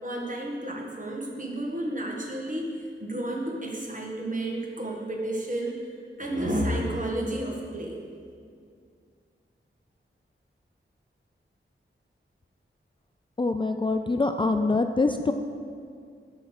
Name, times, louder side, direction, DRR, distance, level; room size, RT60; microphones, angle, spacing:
voice 1, 0.0-2.7 3.0-5.8 6.2-8.0, right 1 dB, 40° right, -1 dB, 1.7 m, -31 dB
voice 2, 13.4-15.3, left 3 dB, 25° left, 6 dB, 0.4 m, -24 dB
11.5 x 4.4 x 6.5 m, 2.2 s
wide cardioid pair, 70°, 21 cm